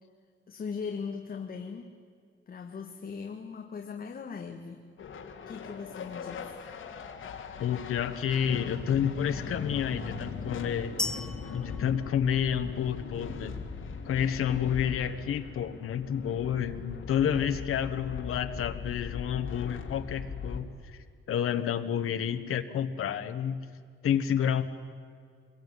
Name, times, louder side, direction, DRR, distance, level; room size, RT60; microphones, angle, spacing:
voice 1, 0.5-2.0 2.5-4.8 5.5-6.5, left 5 dB, 45° left, 3 dB, 1.7 m, -39 dB
sound 1, 5.0-20.6, left 5 dB, 70° left, 3.2 m, -40 dB
voice 2, 7.6-10.9 11.5-13.6 14.0-20.7 21.3-23.6 24.0-24.6, left 9 dB, 90° left, 8 dB, 1.4 m, -29 dB
sound 2, 11.0-12.9, left 2 dB, 5° left, 0.8 m, -37 dB
26.5 x 22.0 x 9.7 m, 2.1 s
wide cardioid pair, 170°, 21 cm